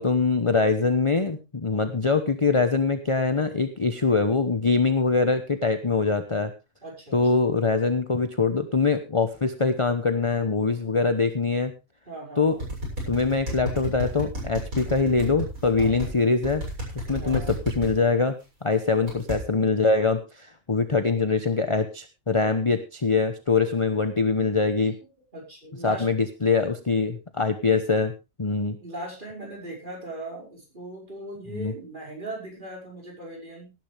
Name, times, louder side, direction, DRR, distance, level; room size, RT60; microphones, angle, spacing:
voice 1, 0.0-6.5 7.1-11.7 12.4-12.6 13.1-16.6 17.1-18.3 18.6-25.0 25.8-28.1 28.4-28.8 31.5-31.7, left 4 dB, 25° left, 9 dB, 0.9 m, -23 dB
voice 2, 6.8-7.4 12.1-12.6 15.7-16.1 17.2-17.6 25.3-26.1 28.8-33.7, right 2 dB, 30° right, -2 dB, 5.8 m, -39 dB
sound 1, 12.6-16.1 16.4-17.9 19.1-19.4, equal, 65° right, 7.6 m, -31 dB
17.5 x 10.5 x 3.4 m, 0.27 s
omnidirectional pair, 1.6 m